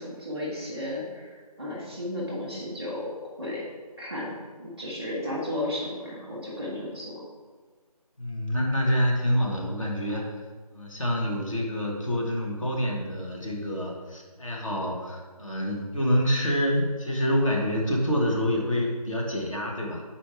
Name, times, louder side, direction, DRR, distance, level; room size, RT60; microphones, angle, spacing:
voice 1, 0.0-3.1 3.4-3.6 4.0-7.2, left 1 dB, 10° left, -5 dB, 0.9 m, -34 dB
voice 2, 8.2-10.3 10.7-20.0, equal, 55° left, -1 dB, 1.5 m, -27 dB
6.2 x 4.5 x 4.9 m, 1.4 s
figure-of-eight pair, 175°, 20 cm